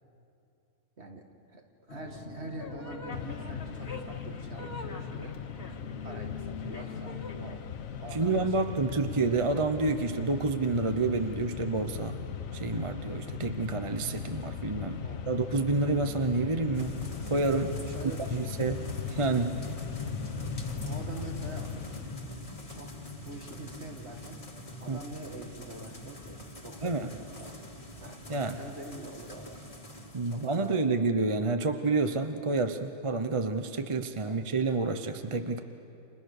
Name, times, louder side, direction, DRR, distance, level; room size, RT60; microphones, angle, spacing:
voice 1, 1.5-5.3 6.0-7.6 8.0-9.0 15.0-15.3 17.8-18.5 20.8-21.7 22.7-22.9 23.2-24.4 24.8-27.6 28.0-29.6 30.2-30.8 34.2-34.4, right 2 dB, 45° right, 3 dB, 2.3 m, -45 dB
sound 1, 1.9-7.6, left 4 dB, 40° left, 1.9 m, -41 dB
Mechanisms, 3.1-22.6, left 8 dB, 65° left, 1.3 m, -39 dB
voice 2, 8.1-12.2 12.5-17.0 17.3-17.8 18.3-19.6 24.9-25.0 26.8-27.1 28.3-28.6 30.1-35.6, right 3 dB, 25° right, 7 dB, 0.8 m, -29 dB
sound 2, 16.7-30.9, left 1 dB, 25° left, 2.0 m, -42 dB
30.0 x 27.0 x 6.7 m, 2.7 s
omnidirectional pair, 1.6 m